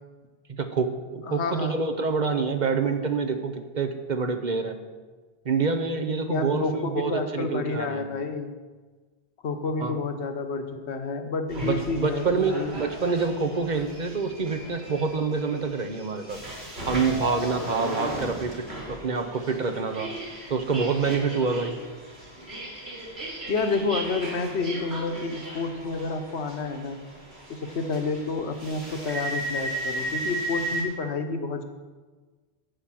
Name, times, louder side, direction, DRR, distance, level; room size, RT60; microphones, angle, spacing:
voice 1, 0.5-4.8 5.4-8.0 9.8-10.0 11.6-16.4 16.9-20.1 20.5-21.8, right 4 dB, 50° right, 7 dB, 0.9 m, -27 dB
voice 2, 1.2-1.8 6.3-8.5 9.4-12.8 23.5-27.0 27.5-31.6, left 3 dB, 90° left, 7 dB, 1.2 m, -29 dB
sound 1, 11.5-30.8, right 1 dB, 75° right, 2.8 m, -36 dB
11.5 x 5.1 x 7.5 m, 1.4 s
omnidirectional pair, 1.1 m